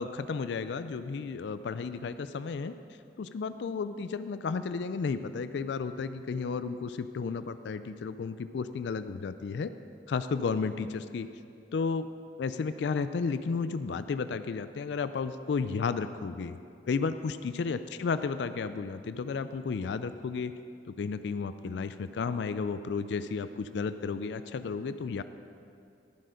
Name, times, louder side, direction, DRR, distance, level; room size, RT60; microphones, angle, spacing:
voice 1, 0.0-2.7 3.2-9.7 10.1-11.3 11.7-12.1 12.4-16.6 16.9-20.5 20.9-25.2, left 5 dB, 75° left, 11 dB, 0.4 m, -33 dB
12.0 x 7.5 x 5.1 m, 2.5 s
head